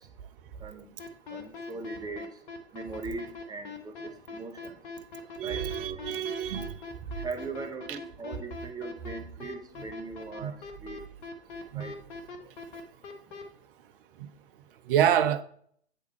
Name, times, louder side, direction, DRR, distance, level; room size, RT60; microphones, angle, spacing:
sound 1, 1.0-13.4, left 4 dB, 50° left, 1.3 m, -41 dB
voice 1, 1.3-2.3 2.7-4.7 5.4-6.0 6.4-6.5 7.2-10.5 10.8-11.0 11.7-12.0, right 3 dB, 10° right, 0.9 m, -40 dB
voice 2, 5.4-6.7 7.9-8.0 10.4-10.5 11.7-11.9 14.9-15.4, right 10 dB, 55° right, 0.7 m, -27 dB
9.0 x 3.6 x 4.4 m
hypercardioid pair, 110°, 32 cm